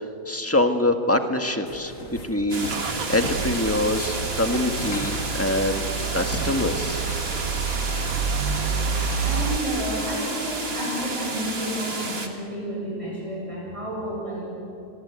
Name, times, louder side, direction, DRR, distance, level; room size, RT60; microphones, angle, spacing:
voice 1, 0.3-2.7 3.1-5.8 6.1-7.0, left 1 dB, 10° left, 6 dB, 1.4 m, -24 dB
sound 1, 1.7-2.3 2.6-3.5 3.9-7.1, left 2 dB, 80° left, 4.1 m, -37 dB
Car / Engine starting / Idling, 1.7-9.6, right 5 dB, 60° right, 1.5 m, -29 dB
sound 2, 2.5-12.3, right 3 dB, 35° right, 2.1 m, -31 dB
voice 2, 9.2-14.4, equal, 20° right, -4 dB, 7.3 m, -30 dB
30.0 x 22.0 x 8.3 m, 2.7 s
omnidirectional pair, 1.7 m